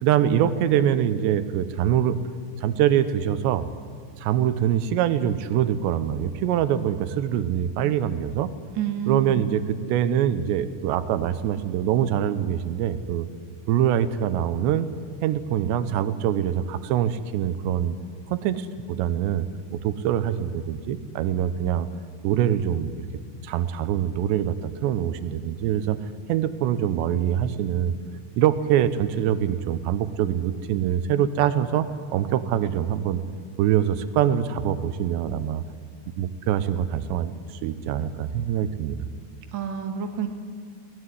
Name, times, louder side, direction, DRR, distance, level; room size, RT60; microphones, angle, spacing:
voice 1, 0.0-2.2 2.6-3.7 4.2-8.5 9.1-13.3 13.7-14.9 15.2-18.0 18.3-19.5 19.7-21.9 22.2-23.1 23.4-26.0 26.3-27.9 28.4-31.9 32.1-33.2 33.6-35.6 36.2-39.0, right 10 dB, 85° right, 13 dB, 3.1 m, -24 dB
voice 2, 8.7-9.5 39.5-40.3, right 8 dB, 55° right, 4 dB, 1.3 m, -28 dB
22.0 x 18.0 x 9.8 m, 2.1 s
omnidirectional pair, 5.0 m